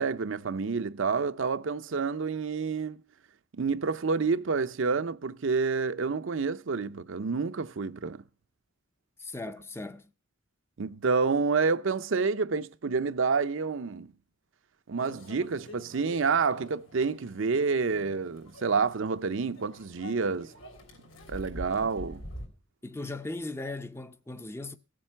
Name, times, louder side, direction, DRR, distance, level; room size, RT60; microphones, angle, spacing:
voice 1, 0.0-3.0 3.5-8.2 10.8-14.1 14.9-20.5 21.3-22.2, right 4 dB, 70° right, 0.6 m, -28 dB
voice 2, 9.2-10.1 22.8-24.8, left 2 dB, 10° left, 0.5 m, -38 dB
Microwave oven, 15.0-22.5, left 1 dB, 80° left, 3.4 m, -46 dB
15.5 x 7.7 x 5.7 m
head